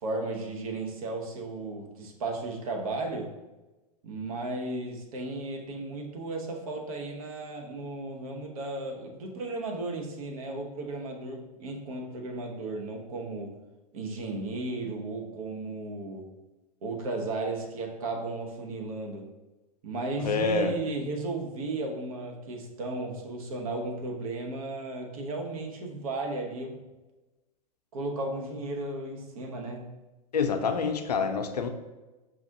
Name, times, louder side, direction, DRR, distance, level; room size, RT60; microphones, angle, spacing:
voice 1, 0.0-3.3 4.0-13.5 13.9-16.3 16.8-19.3 19.8-26.8 27.9-30.0, right 2 dB, 60° right, 2 dB, 0.9 m, -35 dB
voice 2, 20.2-20.8 30.3-31.7, left 5 dB, 80° left, 6 dB, 0.5 m, -27 dB
5.8 x 2.5 x 2.7 m, 1.1 s
figure-of-eight pair, 100°, 20 cm